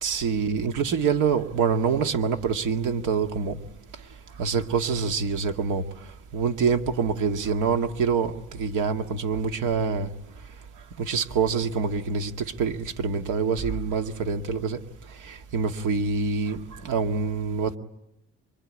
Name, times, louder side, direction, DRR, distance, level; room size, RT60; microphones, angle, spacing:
voice 1, 0.0-3.6 4.4-5.9 6.3-10.1 11.0-14.8 15.2-16.6 16.8-17.8, right 5 dB, 80° right, 5 dB, 1.9 m, -25 dB
25.5 x 23.5 x 9.8 m, 0.93 s
cardioid pair, 90°, 30 cm